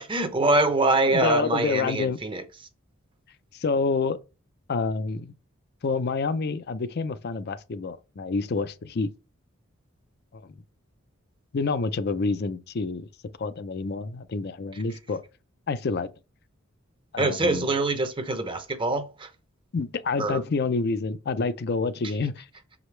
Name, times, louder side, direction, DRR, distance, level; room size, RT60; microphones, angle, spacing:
voice 1, 0.0-2.4 14.7-14.8 17.2-19.3 20.2-20.4, right 2 dB, 25° right, 0.7 m, -24 dB
voice 2, 1.1-2.2 3.5-4.2 4.7-5.3 5.8-9.1 10.3-10.6 11.5-13.1 13.4-15.2 15.7-16.1 17.1-17.7 19.7-22.5, left 4 dB, 50° left, 0.5 m, -28 dB
6.4 x 4.9 x 3.2 m
head